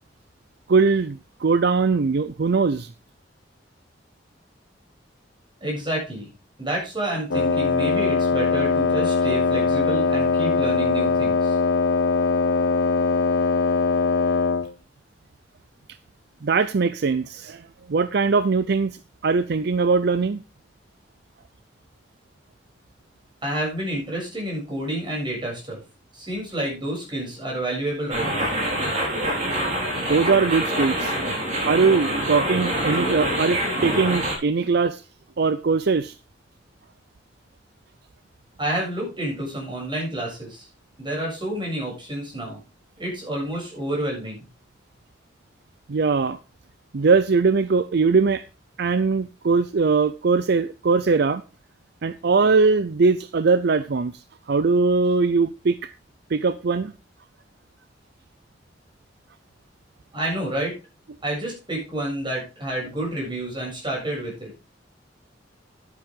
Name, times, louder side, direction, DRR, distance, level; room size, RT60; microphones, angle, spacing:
voice 1, 0.7-2.9 16.4-20.4 29.9-31.1 31.7-35.0 35.4-36.1 45.9-46.4 46.9-48.4 48.8-51.4 52.0-54.2 54.5-55.9 56.3-56.9, right 4 dB, 60° right, 0.5 m, -21 dB
voice 2, 5.6-6.3 6.6-11.6 23.4-25.8 26.1-28.6 38.6-40.7 41.0-42.6 43.0-44.4 60.1-60.7 61.2-64.5, right 1 dB, 25° right, 7.0 m, -29 dB
Wind instrument woodwind instrument, 7.3-14.7, left 4 dB, 80° left, 0.7 m, -21 dB
sound 1, 28.1-34.4, right 1 dB, 40° right, 4.7 m, -25 dB
10.5 x 9.9 x 3.7 m
head